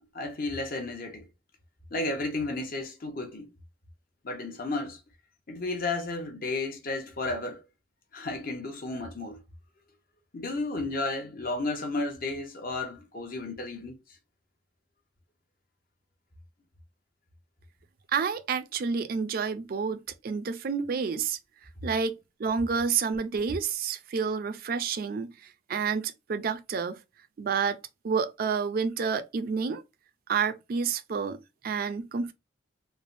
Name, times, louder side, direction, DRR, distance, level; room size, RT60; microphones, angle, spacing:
voice 1, 0.1-1.2 1.9-3.5 4.2-5.0 5.5-7.6 8.1-9.4 10.3-14.0, left 2 dB, 50° left, 0.8 m, -33 dB
voice 2, 18.1-21.4 21.8-25.3 25.7-27.0 27.4-27.8 28.0-29.8 30.3-32.3, right 5 dB, 50° right, 0.4 m, -29 dB
3.3 x 2.1 x 2.5 m
head